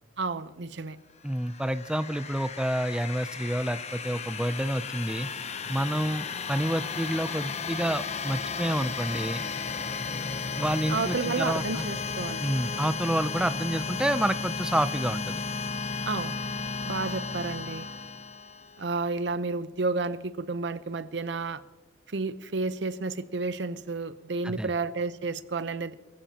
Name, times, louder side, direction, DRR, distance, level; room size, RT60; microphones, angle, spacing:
voice 1, 0.2-1.0 10.9-12.5 16.0-16.4 16.8-17.9 18.8-21.6 22.1-25.9, right 3 dB, 70° right, 13 dB, 0.7 m, -31 dB
voice 2, 1.2-5.3 5.7-9.4 10.6-11.8 12.4-15.4 24.4-24.7, right 1 dB, 5° right, 11 dB, 0.4 m, -29 dB
sound 1, 1.3-18.9, left 5 dB, 35° left, 0.7 m, -34 dB
24.5 x 14.5 x 2.9 m, 1.1 s
head